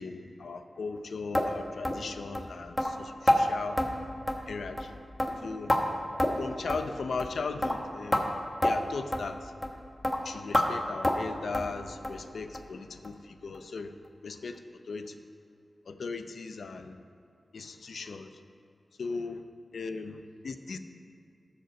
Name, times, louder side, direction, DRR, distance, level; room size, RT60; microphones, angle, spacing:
voice 1, 0.0-3.8 4.5-5.0 5.4-5.8 6.4-8.3 8.6-9.5 10.2-13.9 14.2-14.6 14.9-15.2 15.9-17.0 17.5-18.3 19.0-19.4 19.7-20.8, left 4 dB, 85° left, 8 dB, 0.6 m, -38 dB
sound 1, 1.3-1.5 1.8-2.0 2.3-2.5 2.8-2.9 3.3-3.4 3.8-3.9 4.3-4.5 4.8-4.9 5.2-5.8 6.2-6.4 6.7-6.8 7.2-7.3 7.6-7.8 8.1-8.2 8.6-8.7 9.1-9.3 9.6-9.8 10.0-10.2 10.5-10.7 11.0-11.2 11.5-11.7 12.0-12.2 12.5-12.7 13.0-13.1 13.5-13.6, left 1 dB, 20° left, 1.3 m, -27 dB
14.0 x 5.3 x 6.4 m, 2.4 s
cardioid pair, 60°, 0 cm